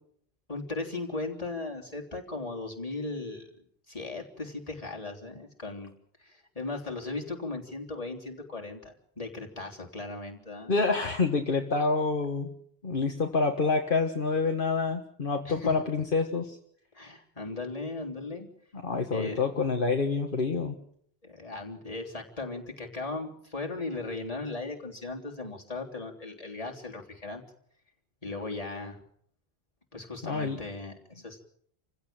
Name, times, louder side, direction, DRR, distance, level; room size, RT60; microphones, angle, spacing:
voice 1, 0.5-3.5 3.9-5.9 6.2-10.7 15.5-15.8 16.9-18.5 19.1-19.4 21.2-27.4 28.2-29.0 29.9-31.4, left 3 dB, 35° left, 0 dB, 3.6 m, -37 dB
voice 2, 10.7-12.5 12.8-16.6 18.8-20.8 30.2-30.6, left 4 dB, 55° left, 4 dB, 1.7 m, -27 dB
28.5 x 16.0 x 7.6 m, 0.67 s
omnidirectional pair, 1.0 m